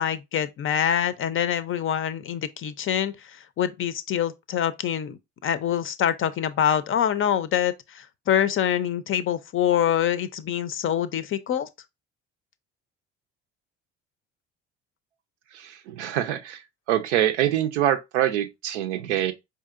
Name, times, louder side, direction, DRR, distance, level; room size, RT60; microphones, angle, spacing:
voice 1, 0.0-3.1 3.6-11.7, left 9 dB, 40° left, 0.5 m, -25 dB
voice 2, 15.5-16.6 16.9-19.3, right 11 dB, 85° right, 0.6 m, -25 dB
4.6 x 2.7 x 2.4 m
hypercardioid pair, 60°, 34 cm